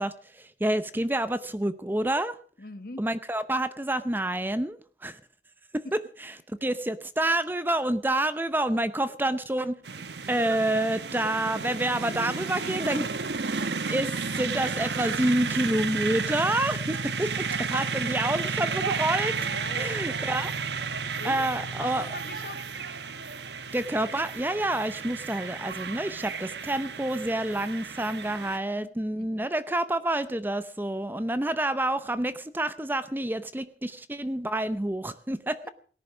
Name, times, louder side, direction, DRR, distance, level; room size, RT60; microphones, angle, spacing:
voice 1, 0.0-2.4 3.0-5.2 5.7-9.8 10.3-13.1 13.9-19.3 19.8-20.5 21.2-22.1 23.7-35.6, right 1 dB, 10° right, 13 dB, 0.6 m, -28 dB
voice 2, 2.6-3.0 11.1-11.2 19.3-20.1 21.2-21.5 21.8-22.7 28.8-29.5 35.6-35.7, left 3 dB, 55° left, 12 dB, 1.2 m, -43 dB
sound 1, 9.8-28.6, right 5 dB, 80° right, 1.1 m, -32 dB
18.0 x 10.5 x 6.2 m, 0.43 s
head